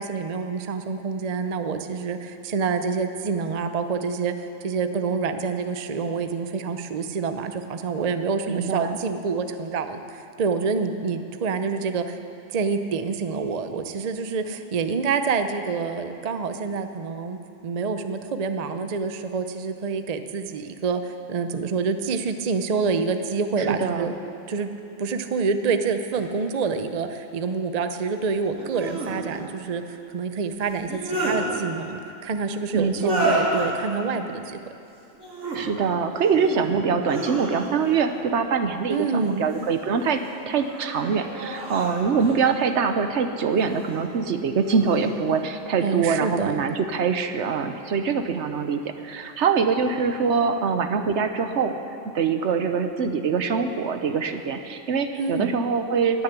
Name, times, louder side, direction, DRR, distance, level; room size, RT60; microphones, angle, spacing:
voice 1, 0.0-12.2 12.5-24.1 24.5-24.7 25.0-34.6 38.9-39.4 45.8-46.6 55.2-55.5, right 5 dB, 45° right, 8 dB, 0.6 m, -27 dB
voice 2, 8.5-9.0 23.6-24.1 32.7-33.4 35.5-40.2 40.5-51.8 52.0-56.2, right 5 dB, 65° right, 8 dB, 1.0 m, -24 dB
sound 1, 26.1-26.2 28.5-29.1 30.7-31.4 32.9-33.7 35.1-35.6 36.1-36.6 37.0-37.9 39.2-39.8 40.4-42.4 43.5-44.0 44.6-45.1, right 1 dB, 85° right, 3.4 m, -30 dB
20.0 x 6.8 x 8.2 m, 2.6 s
omnidirectional pair, 1.3 m